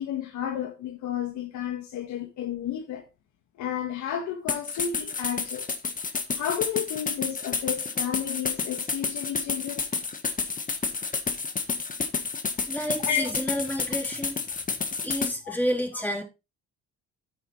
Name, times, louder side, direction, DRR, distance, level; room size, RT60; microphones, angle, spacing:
voice 1, 0.0-3.1 3.6-5.7 6.3-9.9 13.0-13.3 15.4-15.6, left 9 dB, 75° left, 1.7 m, -32 dB
sound 1, 4.5-15.3, left 4 dB, 25° left, 1.5 m, -30 dB
voice 2, 12.7-14.4 15.0-16.2, equal, 5° left, 4.0 m, -30 dB
9.9 x 9.5 x 3.2 m
cardioid pair, 105°, 30 cm